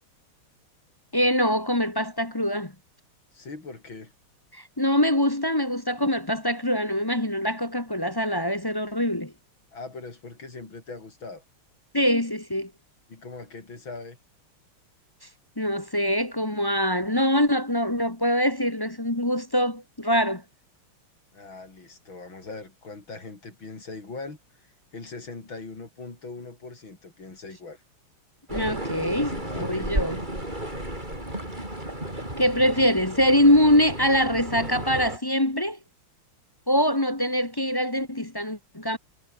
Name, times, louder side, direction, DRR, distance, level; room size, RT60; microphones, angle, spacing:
voice 1, 1.1-2.7 4.5-9.3 11.9-12.7 15.6-20.4 28.5-30.2 32.4-35.8 36.7-39.0, equal, 15° left, 1.1 m, -24 dB
voice 2, 3.3-4.1 9.7-11.4 13.1-14.2 21.3-27.8 29.0-29.9, left 3 dB, 65° left, 6.0 m, -41 dB
sound 1, 28.5-35.2, right 1 dB, 20° right, 7.9 m, -33 dB
omnidirectional pair, 2.3 m